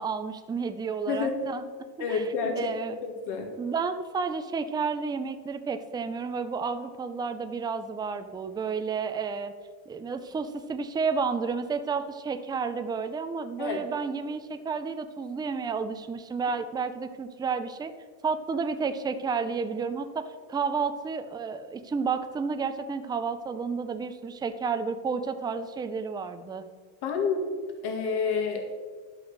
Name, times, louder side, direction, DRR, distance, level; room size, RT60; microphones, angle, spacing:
voice 1, 0.0-1.7 2.0-2.3 2.6-3.0 3.6-9.5 9.9-17.9 18.2-26.7, right 5 dB, 10° right, 9 dB, 0.4 m, -31 dB
voice 2, 2.0-2.7 3.0-3.5 13.6-13.8 27.0-27.4 27.8-28.7, left 5 dB, 60° left, 2 dB, 2.1 m, -28 dB
11.5 x 6.0 x 6.5 m, 1.5 s
cardioid pair, 145°, 45 cm